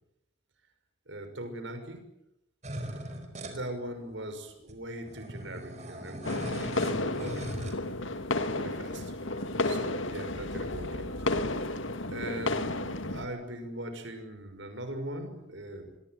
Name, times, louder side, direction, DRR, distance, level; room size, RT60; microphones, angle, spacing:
voice 1, 1.1-2.0 3.4-7.6 8.5-9.1 9.6-11.2 12.1-15.9, right 1 dB, 65° right, 8 dB, 6.0 m, -40 dB
sound 1, 2.6-3.6 4.3-4.4 4.6-7.7, right 1 dB, 35° right, 4.9 m, -39 dB
sound 2, 6.2-13.3, left 2 dB, 70° left, 2.1 m, -32 dB
25.0 x 24.0 x 9.3 m, 0.85 s
head